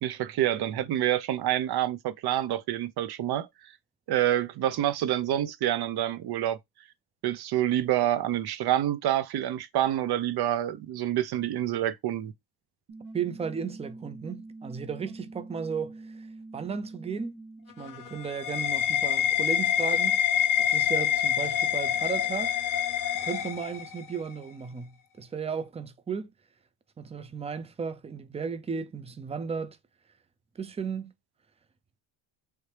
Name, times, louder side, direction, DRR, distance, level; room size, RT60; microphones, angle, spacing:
voice 1, 0.0-3.5 4.1-6.6 7.2-12.3, right 12 dB, 60° right, 0.7 m, -27 dB
sound 1, 12.9-17.8, right 2 dB, 45° right, 1.1 m, -45 dB
voice 2, 13.1-16.3 16.5-17.4 17.8-20.2 20.6-22.6 23.2-26.3 27.0-29.8 30.6-31.1, right 6 dB, 15° right, 0.4 m, -35 dB
sound 2, 17.7-24.2, left 9 dB, 45° left, 0.6 m, -26 dB
3.2 x 2.8 x 3.3 m
cardioid pair, 100°, 44 cm